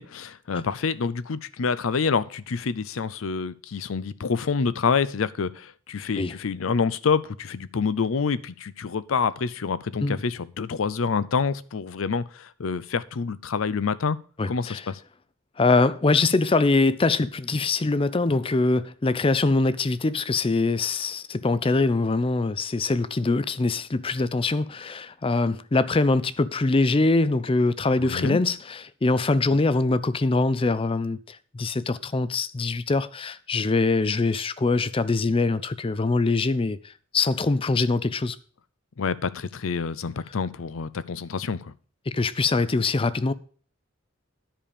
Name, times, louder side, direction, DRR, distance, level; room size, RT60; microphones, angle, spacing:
voice 1, 0.0-14.2 14.5-15.0 28.0-28.4 39.0-41.7, left 5 dB, 85° left, 0.5 m, -27 dB
voice 2, 14.4-14.8 15.6-36.8 37.1-38.4 42.1-43.3, left 3 dB, 25° left, 0.5 m, -23 dB
10.5 x 5.0 x 6.8 m
head